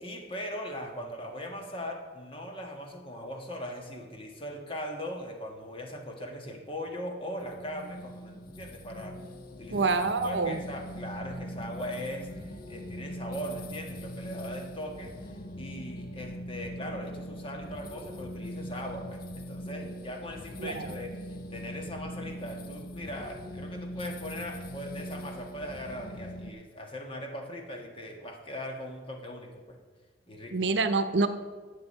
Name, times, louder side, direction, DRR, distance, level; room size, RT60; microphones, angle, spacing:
voice 1, 0.0-9.1 9.5-9.9 10.2-29.8 30.3-30.6, equal, 30° left, 2 dB, 1.6 m, -40 dB
sound 1, 7.4-26.5, equal, 55° left, 0.8 m, -41 dB
voice 2, 9.7-10.6 20.6-20.9 30.5-31.3, right 3 dB, 85° right, 10 dB, 0.7 m, -26 dB
11.0 x 7.7 x 5.5 m, 1.5 s
head